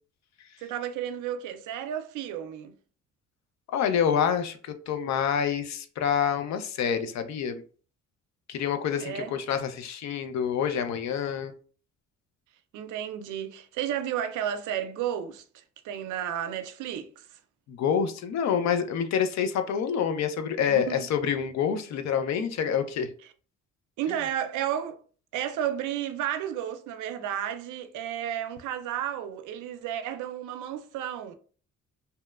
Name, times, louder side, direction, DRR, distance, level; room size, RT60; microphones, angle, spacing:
voice 1, 0.6-2.8 9.0-9.3 12.7-17.4 20.8-21.1 24.0-25.0 25.3-31.3, right 10 dB, 80° right, 0.4 m, -32 dB
voice 2, 3.7-7.6 8.5-11.5 17.7-23.1, left 7 dB, 65° left, 0.5 m, -27 dB
2.8 x 2.1 x 2.3 m
cardioid pair, 90°, 30 cm